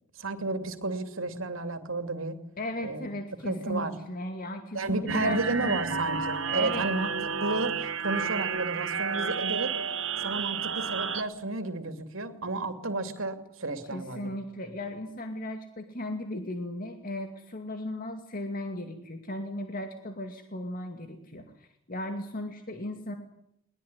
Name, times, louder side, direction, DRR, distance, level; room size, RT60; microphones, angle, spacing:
voice 1, 0.1-2.4 2.8-3.1 3.4-3.9 4.7-9.7 10.2-14.4, right 2 dB, 85° right, 8 dB, 2.8 m, -32 dB
voice 2, 2.6-5.8 6.4-6.8 13.9-23.1, left 1 dB, 45° left, 5 dB, 2.4 m, -36 dB
sound 1, 5.1-11.2, right 6 dB, 65° right, 1.8 m, -31 dB
21.0 x 21.0 x 9.9 m, 0.74 s
head